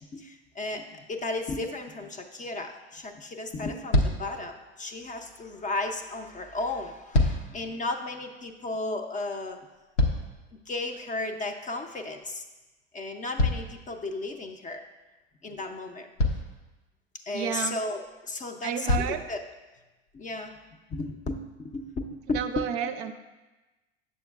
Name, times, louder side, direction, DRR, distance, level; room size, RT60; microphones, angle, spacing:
voice 1, 0.0-9.6 10.7-12.4 12.9-14.8 15.4-16.1 17.3-19.4 20.1-20.5 20.9-22.7, left 2 dB, 20° left, 6 dB, 0.5 m, -34 dB
sound 1, 1.4-1.6 3.0-3.1 3.5-3.6 3.9-4.4 6.8-7.6 9.5-10.6 13.4-14.4 15.5-15.6 16.2-16.6 18.1-18.2 18.9-19.3 20.1-20.2, left 1 dB, 85° left, 0.8 m, -26 dB
voice 2, 17.3-17.8 18.6-19.2 22.3-23.1, right 9 dB, 50° right, 9 dB, 0.5 m, -31 dB
7.2 x 7.1 x 2.3 m, 1.1 s
hypercardioid pair, 80°, 34 cm